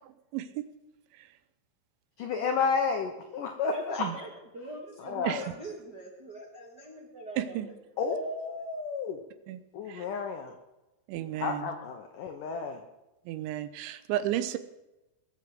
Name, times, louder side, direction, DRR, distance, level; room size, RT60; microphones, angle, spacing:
voice 1, 0.3-0.7 1.1-1.3 4.0-4.2 5.2-5.4 7.4-7.7 9.5-9.6 9.9-10.1 11.1-11.7 13.3-14.6, right 13 dB, 80° right, 11 dB, 3.1 m, -33 dB
voice 2, 2.2-4.1 5.0-5.5 8.0-9.2 9.7-10.5 11.4-12.8, left 5 dB, 80° left, 4 dB, 1.9 m, -31 dB
voice 3, 3.7-7.7, right 2 dB, 60° right, -2 dB, 1.0 m, -43 dB
20.0 x 7.1 x 7.8 m, 0.99 s
omnidirectional pair, 5.4 m